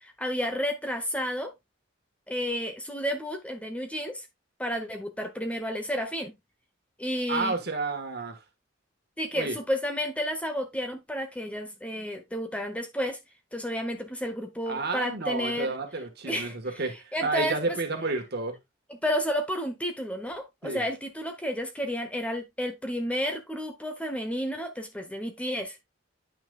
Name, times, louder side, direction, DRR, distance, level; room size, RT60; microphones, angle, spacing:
voice 1, 0.0-1.5 2.3-4.3 4.6-6.4 7.0-7.5 9.2-13.2 13.5-15.7 16.2-16.6 17.1-17.8 19.0-25.8, equal, 5° left, 1.1 m, -31 dB
voice 2, 7.3-8.4 9.3-9.6 14.7-18.6 20.6-20.8, right 3 dB, 55° right, 1.6 m, -31 dB
9.0 x 6.0 x 2.4 m
head